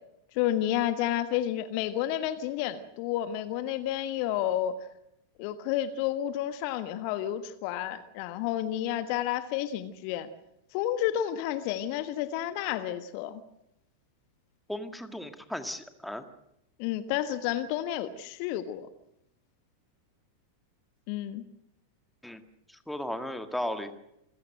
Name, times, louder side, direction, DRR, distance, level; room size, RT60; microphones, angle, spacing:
voice 1, 0.3-4.8 5.4-10.3 10.7-13.4 16.8-18.9 21.1-21.4, left 12 dB, 45° left, 12 dB, 1.3 m, -30 dB
voice 2, 14.7-16.2 22.2-22.4 22.7-23.9, left 1 dB, ahead, 8 dB, 1.8 m, -35 dB
27.5 x 16.5 x 7.7 m, 0.82 s
figure-of-eight pair, 90°, 0 cm